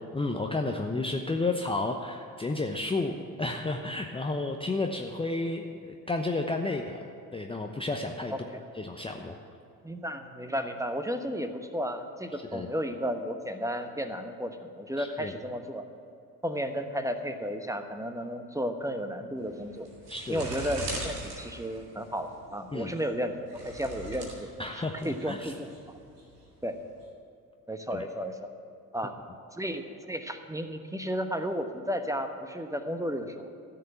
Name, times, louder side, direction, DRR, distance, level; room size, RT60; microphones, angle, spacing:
voice 1, 0.1-7.0 7.3-8.3 8.7-9.4 12.5-12.7 15.0-15.3 20.1-20.4 22.7-22.9 24.6-25.5 27.9-28.0, left 2 dB, 10° left, 3 dB, 0.8 m, -32 dB
voice 2, 9.8-15.9 16.4-19.9 20.3-23.4 23.6-25.7 26.6-26.8 27.7-28.5 28.9-29.1 29.5-33.5, equal, 5° right, 7 dB, 1.1 m, -33 dB
sound 1, 19.4-27.0, right 2 dB, 80° right, 1.9 m, -41 dB
14.0 x 6.8 x 8.7 m, 2.5 s
figure-of-eight pair, 50°, 46 cm